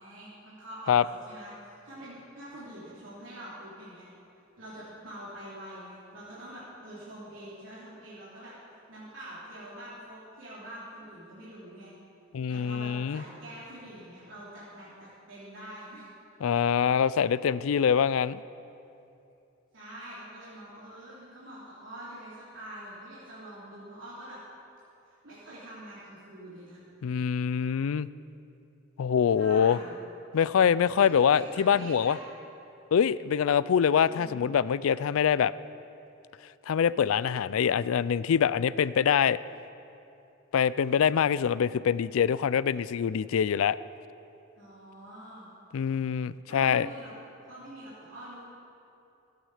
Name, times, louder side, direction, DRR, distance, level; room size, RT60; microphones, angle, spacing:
voice 1, 0.0-4.1 4.6-8.5 8.9-11.9 12.5-16.0 19.7-24.4 25.1-26.8 29.3-30.0 31.0-32.2 34.0-34.5 44.6-45.5 46.5-47.1 47.4-48.5, right 1 dB, 65° right, -10 dB, 3.4 m, -45 dB
voice 2, 12.3-13.2 16.4-18.4 27.0-28.1 29.0-29.8 30.3-32.2 32.9-35.5 36.7-39.4 40.5-43.8 45.7-46.9, left 7 dB, 85° left, 18 dB, 0.4 m, -24 dB
22.0 x 9.4 x 5.0 m, 2.7 s
head